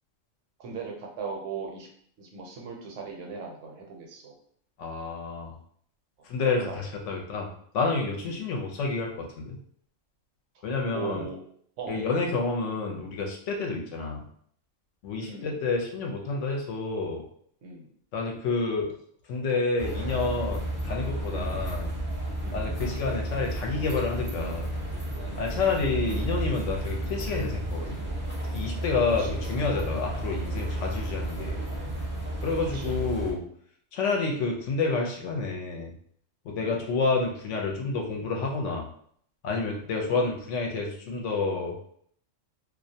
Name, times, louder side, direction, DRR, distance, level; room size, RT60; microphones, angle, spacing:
voice 1, 0.6-1.9 2.2-4.3 6.6-6.9 8.2-8.4 10.9-11.4 11.8-12.0 13.7-13.8 15.2-15.6 17.6-17.9 21.3-21.7 22.4-22.8 26.9-27.1 29.2-29.4 32.7-33.0 36.6-36.8, right 4 dB, 75° right, 0 dB, 1.0 m, -39 dB
voice 2, 4.8-5.5 6.2-9.6 10.6-11.2 11.9-14.2 15.0-17.2 18.1-18.9 19.3-21.9 22.5-24.7 25.4-28.0 28.5-31.6 32.4-33.4 33.9-35.9 36.4-38.9 39.4-41.9, left 4 dB, 70° left, 0 dB, 0.9 m, -29 dB
sound 1, 19.8-33.3, right 1 dB, 15° right, 0.5 m, -32 dB
2.4 x 2.1 x 2.6 m, 0.63 s
omnidirectional pair, 1.3 m